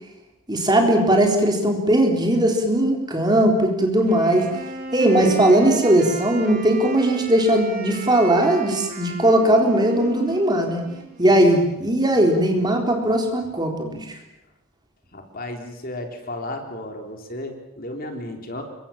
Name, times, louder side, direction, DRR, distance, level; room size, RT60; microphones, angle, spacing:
voice 1, 0.5-4.5 4.9-10.8 11.2-14.1, right 1 dB, 20° right, 3 dB, 4.0 m, -19 dB
Wind instrument woodwind instrument, 4.0-11.9, right 3 dB, 40° right, 3.5 m, -35 dB
voice 2, 15.1-18.6, left 1 dB, 45° left, 4 dB, 3.6 m, -33 dB
28.0 x 23.5 x 7.4 m, 0.87 s
head